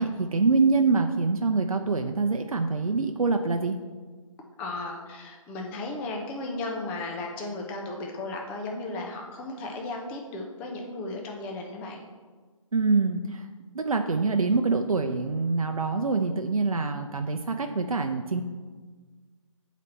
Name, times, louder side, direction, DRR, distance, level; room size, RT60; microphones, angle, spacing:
voice 1, 0.0-3.8 12.7-13.4 13.7-18.4, right 4 dB, 90° right, 5 dB, 0.5 m, -25 dB
voice 2, 4.6-12.0, left 2 dB, 5° left, 1 dB, 0.4 m, -35 dB
8.2 x 4.1 x 4.3 m, 1.4 s
figure-of-eight pair, 145°, 17 cm